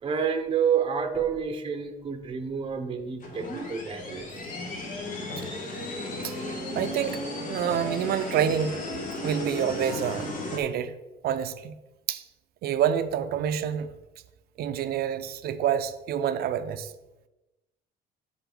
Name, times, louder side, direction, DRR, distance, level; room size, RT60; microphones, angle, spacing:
voice 1, 0.0-4.3, right 7 dB, 30° right, 5 dB, 0.8 m, -29 dB
sound 1, 3.2-10.6, left 1 dB, 50° left, 1.8 m, -34 dB
voice 2, 6.7-7.2 7.5-8.8 9.2-10.9 11.2-11.7 12.1-12.2 12.6-13.9 14.6-16.9, right 9 dB, 65° right, 11 dB, 0.6 m, -27 dB
11.5 x 3.9 x 3.9 m, 1.0 s
cardioid pair, 110°, 17 cm